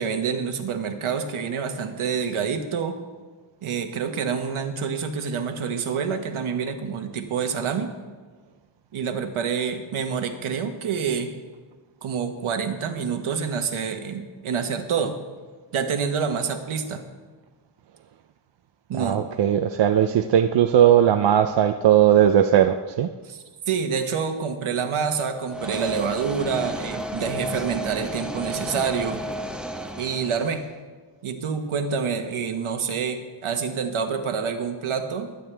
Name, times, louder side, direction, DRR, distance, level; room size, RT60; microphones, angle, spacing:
voice 1, 0.0-2.9 3.6-7.9 8.9-11.3 12.0-15.1 15.7-17.0 18.9-19.2 23.2-29.2 29.9-30.6 31.2-35.3, right 6 dB, 75° right, 6 dB, 1.4 m, -27 dB
voice 2, 18.9-23.1, right 10 dB, 60° right, 7 dB, 0.6 m, -18 dB
sound 1, 25.5-30.7, right 1 dB, ahead, 0.7 m, -32 dB
21.0 x 9.3 x 3.4 m, 1.4 s
wide cardioid pair, 135°, 49 cm